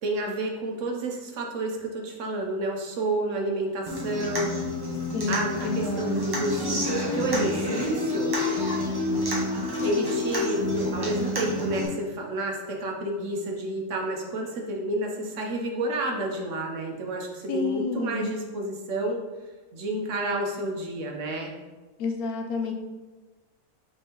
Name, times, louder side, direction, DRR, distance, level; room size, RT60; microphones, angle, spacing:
voice 1, 0.0-4.6 5.3-8.4 9.8-19.2 19.7-21.5, right 1 dB, 65° right, 1 dB, 1.0 m, -30 dB
Human voice / Acoustic guitar, 3.9-11.9, left 1 dB, 25° right, 0.6 m, -28 dB
voice 2, 5.1-6.4 17.5-18.3 22.0-22.7, left 4 dB, 85° left, 3 dB, 1.1 m, -30 dB
5.2 x 3.5 x 2.8 m, 1.2 s
omnidirectional pair, 1.5 m